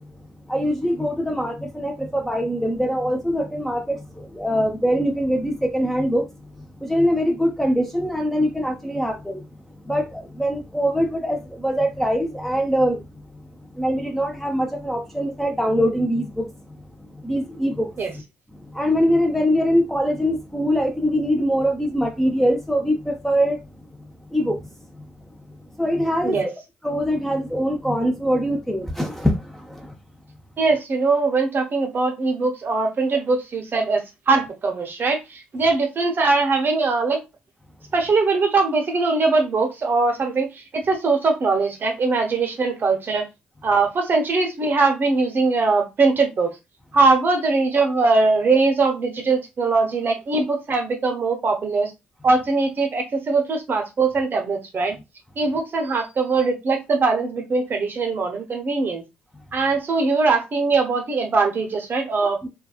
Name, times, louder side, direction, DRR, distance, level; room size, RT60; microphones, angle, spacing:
voice 1, 0.5-4.0 4.4-6.2 6.8-9.4 9.9-11.4 11.6-13.0 13.8-16.5 17.2-17.9 18.7-23.6 24.3-24.6 25.8-26.5 26.8-29.4 62.2-62.5, equal, 5° left, 0.6 m, -22 dB
voice 2, 30.6-37.2 37.9-40.5 40.7-43.2 43.6-46.5 46.9-51.9 52.2-55.0 55.4-59.0 59.5-62.4, right 3 dB, 40° right, 0.8 m, -21 dB
3.4 x 2.1 x 2.3 m
figure-of-eight pair, 40°, 5 cm